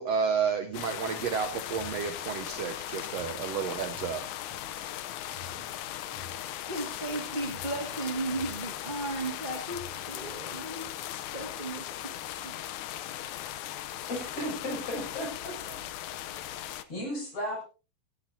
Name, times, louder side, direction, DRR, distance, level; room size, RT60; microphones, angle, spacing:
voice 1, 0.0-4.2, right 6 dB, 75° right, 8 dB, 1.5 m, -31 dB
sound 1, 0.7-16.8, left 12 dB, 70° left, 2.0 m, -38 dB
sound 2, 1.7-3.5 3.9-5.7 6.1-7.9 8.3-10.1, left 1 dB, 40° right, 4.5 m, -50 dB
voice 2, 6.7-10.9 11.3-12.1 12.4-12.6, right 2 dB, 20° right, 1 dB, 1.5 m, -35 dB
voice 3, 14.1-15.8 16.4-17.6, equal, 40° left, -1 dB, 8.5 m, -36 dB
19.5 x 16.0 x 2.8 m, 0.33 s
omnidirectional pair, 4.1 m